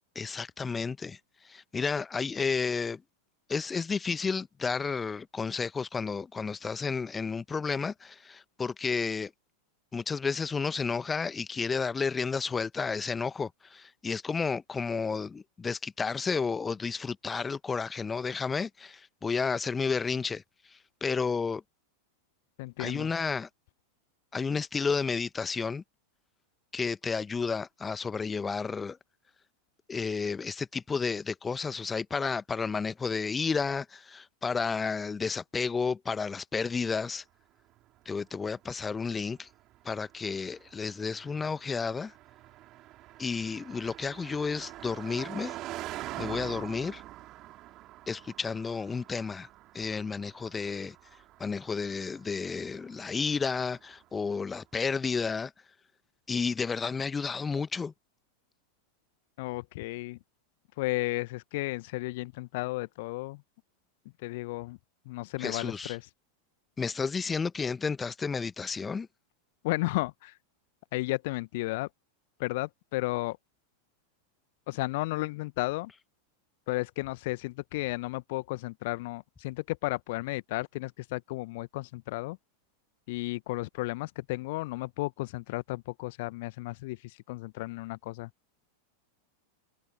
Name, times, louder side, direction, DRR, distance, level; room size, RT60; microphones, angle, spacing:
voice 1, 0.1-1.2 1.4-3.0 3.5-9.3 9.9-20.4 21.0-21.6 22.8-23.5 24.3-25.8 26.7-29.0 29.9-37.2 38.0-39.5 39.8-42.1 43.2-45.5 46.2-47.0 48.1-49.5 49.7-50.9 51.4-55.5 56.3-57.9 65.4-66.0 66.8-69.1, left 5 dB, 15° left, 1.1 m, -31 dB
voice 2, 22.6-23.1 59.4-60.2 60.8-63.4 64.2-64.8 65.1-66.1 69.6-70.3 70.9-71.9 72.4-73.4 74.7-75.9 76.7-82.4 83.1-88.3, left 21 dB, 50° left, 1.0 m, -33 dB
Car passing by, 37.7-54.2, right 15 dB, 35° right, 5.0 m, -46 dB
figure-of-eight pair, 90°, 0 cm